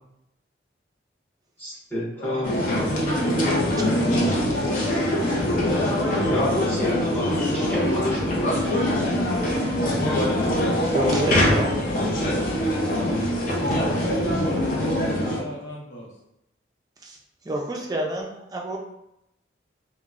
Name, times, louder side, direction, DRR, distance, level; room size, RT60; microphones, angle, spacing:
voice 1, 1.6-2.5 6.3-8.7, left 1 dB, 10° left, -11 dB, 1.0 m, -29 dB
voice 2, 2.2-3.5 14.7-16.1, equal, 80° left, -4 dB, 0.8 m, -38 dB
sound 1, 2.4-15.4, left 1 dB, 45° left, 0.5 m, -23 dB
voice 3, 10.9-11.8 17.0-17.2 17.4-18.8, right 1 dB, 20° right, 0 dB, 0.3 m, -29 dB
2.9 x 2.1 x 2.4 m, 0.83 s
head